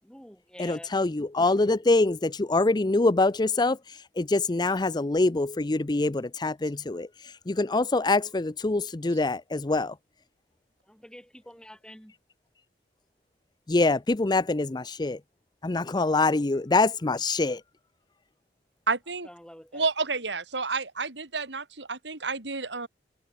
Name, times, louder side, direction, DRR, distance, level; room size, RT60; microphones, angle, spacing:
voice 1, 0.0-0.9 10.8-12.1 19.2-19.9, equal, 5° left, 7.6 m, -48 dB
voice 2, 0.6-9.9 13.7-15.2 15.6-17.6, left 2 dB, 25° left, 0.6 m, -25 dB
voice 3, 18.9-19.3 19.7-22.9, right 4 dB, 85° right, 3.4 m, -30 dB
head